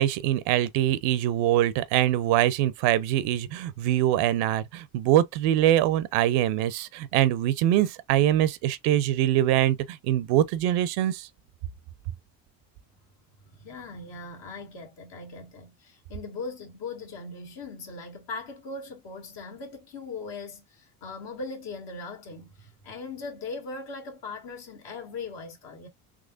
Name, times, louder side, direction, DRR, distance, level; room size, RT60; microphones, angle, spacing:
voice 1, 0.0-11.3, right 12 dB, 85° right, 0.7 m, -23 dB
voice 2, 13.5-25.9, left 3 dB, 65° left, 1.7 m, -39 dB
3.7 x 3.1 x 2.5 m
supercardioid pair, 80°, 45 cm